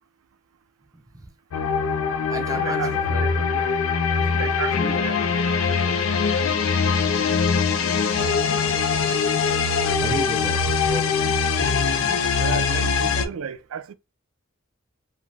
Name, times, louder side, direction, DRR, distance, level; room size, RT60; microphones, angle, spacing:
voice 1, 0.9-1.3 2.3-3.3 4.8-5.0 9.0-9.1 10.0-11.1 11.7-12.6, right 2 dB, 15° right, 0.7 m, -35 dB
sound 1, 1.5-13.3, left 5 dB, 75° left, 0.5 m, -22 dB
voice 2, 2.4-3.7 4.1-6.4 6.9-7.5 12.1-13.9, right 7 dB, 85° right, 0.4 m, -35 dB
2.6 x 2.4 x 3.1 m
head